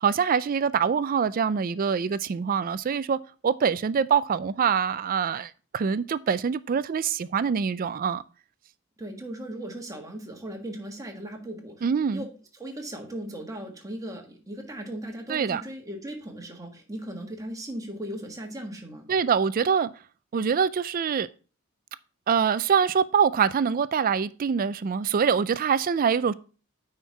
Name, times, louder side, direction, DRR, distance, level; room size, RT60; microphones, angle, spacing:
voice 1, 0.0-3.2 3.4-8.2 11.8-12.2 15.3-15.6 19.1-19.9 20.3-21.3 22.3-26.3, right 6 dB, 40° right, 0.4 m, -24 dB
voice 2, 9.0-11.9 12.1-12.3 12.6-19.1, right 1 dB, 15° right, 1.6 m, -37 dB
9.3 x 4.4 x 4.5 m
head